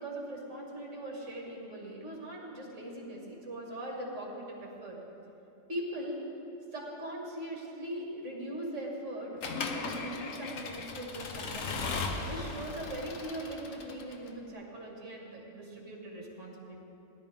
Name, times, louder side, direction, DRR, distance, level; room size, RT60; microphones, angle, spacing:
voice 1, 0.0-5.0 5.7-6.2 6.7-11.9 12.2-16.8, right 1 dB, 50° right, -2 dB, 2.5 m, -40 dB
Accelerating revving vroom / Mechanisms, 9.4-14.3, left 4 dB, 60° left, 1.2 m, -37 dB
19.0 x 11.5 x 3.6 m, 3.0 s
omnidirectional pair, 1.6 m